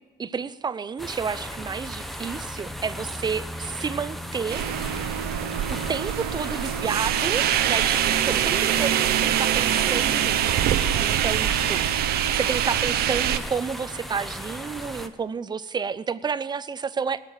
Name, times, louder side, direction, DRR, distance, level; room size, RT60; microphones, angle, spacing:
voice 1, 0.2-4.7 5.7-10.7 11.0-17.2, right 6 dB, 25° right, 16 dB, 0.5 m, -30 dB
sound 1, 1.0-15.1, equal, ahead, 0.9 m, -36 dB
sound 2, 4.5-13.4, right 10 dB, 65° right, 0.8 m, -24 dB
17.5 x 7.5 x 8.1 m, 1.3 s
cardioid pair, 110°, 17 cm